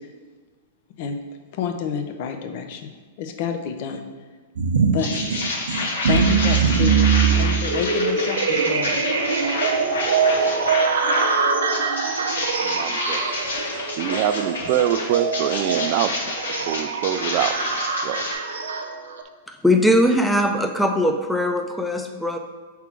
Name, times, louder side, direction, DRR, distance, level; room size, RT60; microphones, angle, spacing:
voice 1, 1.5-2.9 3.2-4.0 4.9-5.1 5.7-9.0, left 7 dB, 55° left, 5 dB, 0.7 m, -29 dB
sound 1, 4.6-19.2, right 5 dB, 80° right, 0.7 m, -23 dB
sound 2, 5.0-11.3 11.7-18.3, left 3 dB, 80° left, 1.2 m, -29 dB
voice 2, 12.6-13.4 14.0-16.1 16.7-17.6 18.0-18.2, right 11 dB, 50° right, 12 dB, 0.4 m, -24 dB
voice 3, 19.5-22.4, equal, ahead, 4 dB, 0.6 m, -20 dB
5.9 x 3.7 x 4.4 m, 1.4 s
hypercardioid pair, 115°, 0 cm